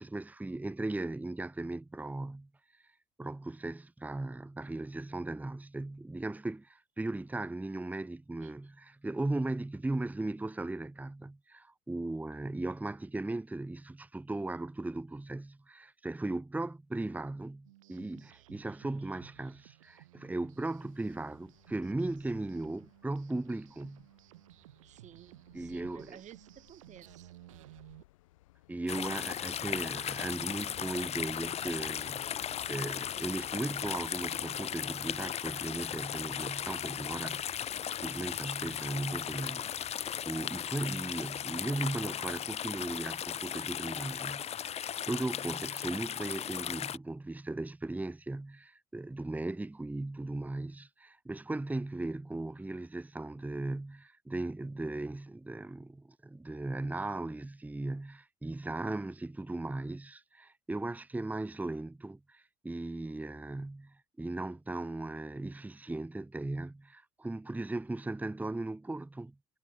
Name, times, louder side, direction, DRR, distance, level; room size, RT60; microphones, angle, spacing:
voice 1, 0.0-2.8 3.2-24.1 25.5-26.2 28.7-37.6 38.0-69.3, right 2 dB, 10° right, 1.2 m, -37 dB
sound 1, 17.6-28.0, right 16 dB, 85° right, 6.1 m, -57 dB
sound 2, 20.9-32.7, left 17 dB, 80° left, 6.8 m, -61 dB
voice 2, 24.9-27.3, right 10 dB, 45° right, 2.0 m, -54 dB
sound 3, 28.9-47.0, left 9 dB, 40° left, 0.9 m, -37 dB
hypercardioid pair, 70°, 17 cm